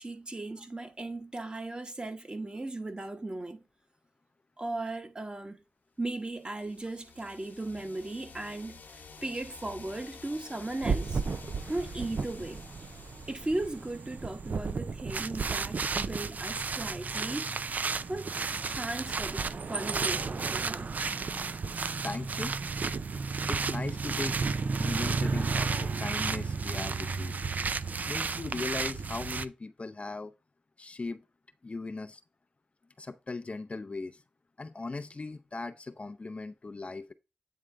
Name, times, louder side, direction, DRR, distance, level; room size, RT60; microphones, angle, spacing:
voice 1, 0.0-3.6 4.6-5.6 6.0-11.2 11.7-12.6 13.3-17.5 18.1-18.3 18.7-20.9, right 2 dB, 30° right, 1.3 m, -37 dB
sound 1, 6.3-15.0, left 4 dB, 75° left, 1.1 m, -51 dB
sound 2, 10.8-29.5, right 4 dB, 60° right, 0.4 m, -32 dB
voice 2, 21.7-22.5 23.5-24.4 24.8-27.3 27.7-30.3 30.8-31.2 31.6-32.2 33.0-34.2 34.6-37.1, left 3 dB, 40° left, 0.5 m, -38 dB
8.7 x 3.6 x 3.3 m
cardioid pair, 55°, 3 cm